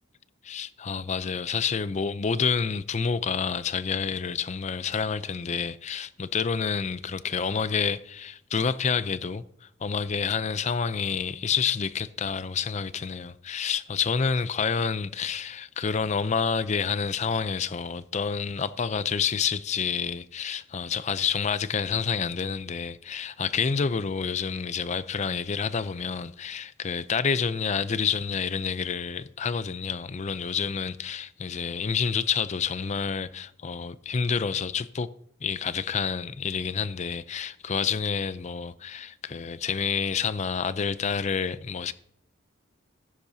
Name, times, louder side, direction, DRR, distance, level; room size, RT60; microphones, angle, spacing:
voice 1, 0.4-35.1 35.4-41.9, left 6 dB, 35° left, 0.5 m, -28 dB
15.0 x 10.5 x 2.7 m
head